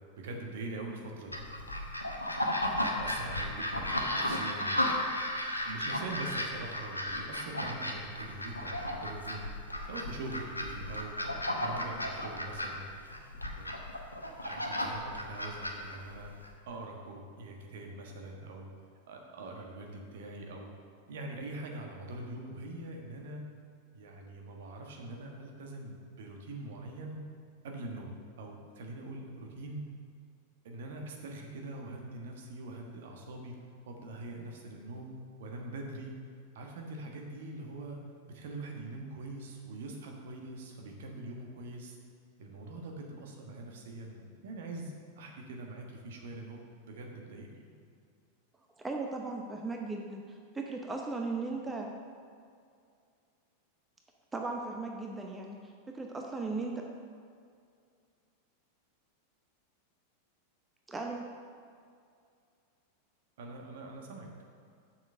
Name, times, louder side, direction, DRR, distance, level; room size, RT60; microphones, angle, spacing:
voice 1, 0.2-1.4 3.0-4.8 5.6-9.5 9.9-11.2 11.6-12.9 13.5-13.8 14.4-16.3 16.7-18.7 19.1-20.7 21.1-23.5 23.9-27.2 27.6-29.8 30.6-33.5 33.9-35.1 35.4-36.1 36.5-38.0 38.3-42.0 42.4-47.5 63.4-64.3, right 2 dB, 55° right, 1 dB, 1.4 m, -43 dB
sound 1, 1.3-16.5, left 1 dB, 85° left, 0.9 m, -34 dB
voice 2, 48.8-50.2 50.5-51.9 54.3-55.6 55.9-56.8 60.9-61.3, right 3 dB, 15° right, 1 dB, 0.8 m, -36 dB
7.4 x 6.1 x 6.4 m, 2.3 s
figure-of-eight pair, 90°, 0 cm